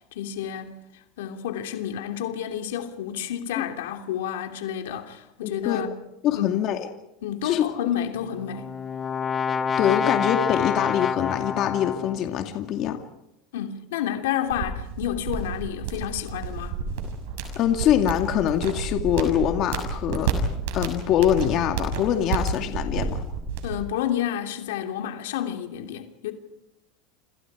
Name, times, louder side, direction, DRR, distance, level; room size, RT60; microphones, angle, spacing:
voice 1, 0.1-5.9 6.3-6.6 7.2-8.7 13.5-16.8 23.6-26.3, left 10 dB, 90° left, 2.9 m, -30 dB
voice 2, 5.4-5.9 6.2-6.8 7.4-7.7 9.8-13.0 17.6-20.3 20.7-23.2, left 10 dB, 45° left, 2.2 m, -24 dB
Brass instrument, 8.2-12.4, left 6 dB, 20° left, 1.1 m, -27 dB
sound 1, 14.5-23.8, right 5 dB, 80° right, 6.5 m, -30 dB
29.0 x 27.0 x 4.9 m
supercardioid pair, 130°, 0 cm